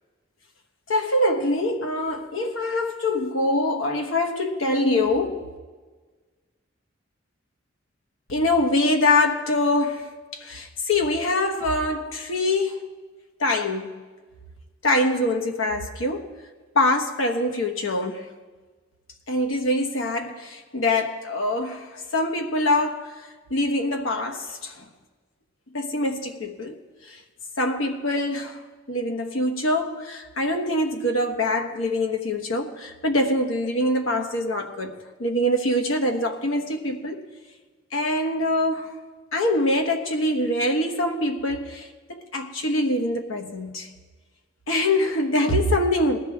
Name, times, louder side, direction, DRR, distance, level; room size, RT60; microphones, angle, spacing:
voice 1, 0.9-5.5 8.3-12.8 13.4-14.0 14.8-16.3 16.7-18.3 19.3-23.1 23.5-24.8 25.7-26.7 27.1-27.2 27.6-37.2 37.9-39.0 39.3-43.9 44.7-46.2, left 1 dB, 80° left, 1.4 m, -24 dB
19.5 x 13.0 x 3.6 m
head